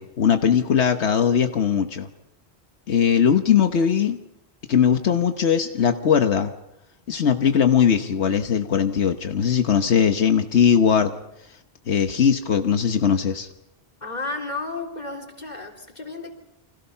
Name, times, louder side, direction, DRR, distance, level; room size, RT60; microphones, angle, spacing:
voice 1, 0.0-2.1 2.9-4.2 4.7-6.5 7.1-11.1 11.9-13.5, left 7 dB, 85° left, 6 dB, 1.4 m, -20 dB
voice 2, 1.2-1.5 14.0-16.3, left 3 dB, 40° left, 2 dB, 3.8 m, -33 dB
30.0 x 26.0 x 5.7 m, 0.87 s
omnidirectional pair, 1.1 m